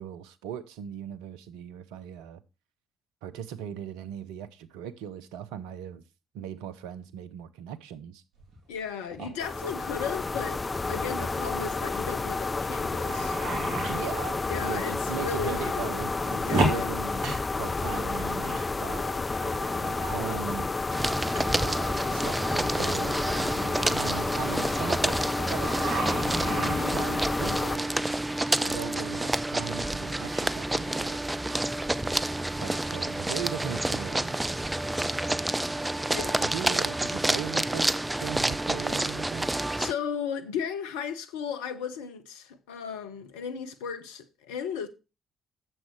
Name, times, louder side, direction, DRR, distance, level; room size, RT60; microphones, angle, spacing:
voice 1, 0.0-2.4 3.2-6.0 6.3-8.2 13.9-16.1 16.6-17.3 17.6-20.7 21.4-26.0 26.8-28.1 28.6-31.2 32.6-34.5 36.4-39.5, right 9 dB, 75° right, 0.8 m, -38 dB
sound 1, 8.4-8.8 9.1-9.3 10.1-10.4 10.8-10.9 11.1-11.3 12.1-12.2 12.7-14.0 14.6-14.7 15.1-15.6 15.9-18.7 18.9-20.2 21.3-21.4 21.9-25.4 25.6-27.1 27.9-28.2, right 2 dB, 60° right, 2.7 m, -33 dB
voice 2, 8.7-10.6 10.9-13.4 14.5-15.9 16.5-16.9 26.5-27.0 36.1-36.5 39.8-44.9, left 7 dB, 80° left, 0.8 m, -35 dB
sound 2, 9.4-27.8, left 3 dB, 30° left, 0.5 m, -30 dB
sound 3, 20.9-39.9, right 1 dB, 15° right, 0.7 m, -29 dB
10.5 x 7.5 x 3.1 m
hypercardioid pair, 40°, 0 cm